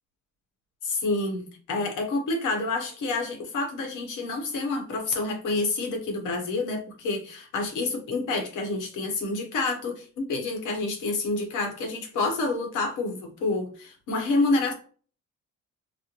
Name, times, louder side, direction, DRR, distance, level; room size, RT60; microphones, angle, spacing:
voice 1, 0.8-14.7, left 3 dB, 80° left, 3 dB, 1.1 m, -28 dB
4.2 x 2.1 x 2.9 m, 0.40 s
cardioid pair, 90°, 30 cm